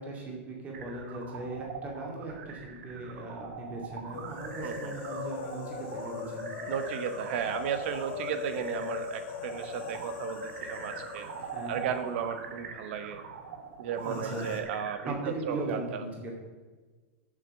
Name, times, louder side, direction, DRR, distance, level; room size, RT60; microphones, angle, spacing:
voice 1, 0.0-6.5 11.5-11.8 14.0-14.5 15.0-16.4, right 2 dB, 20° right, -1 dB, 2.4 m, -38 dB
sound 1, 0.7-15.1, right 6 dB, 85° right, 1.3 m, -43 dB
sound 2, 4.1-13.0 13.2-13.3 14.0-14.6, left 6 dB, 60° left, 1.4 m, -40 dB
voice 2, 4.6-4.9 6.7-11.3 11.7-13.2 13.8-16.0, right 8 dB, 60° right, 9 dB, 1.1 m, -34 dB
7.6 x 6.7 x 6.7 m, 1.4 s
supercardioid pair, 150°, 7 cm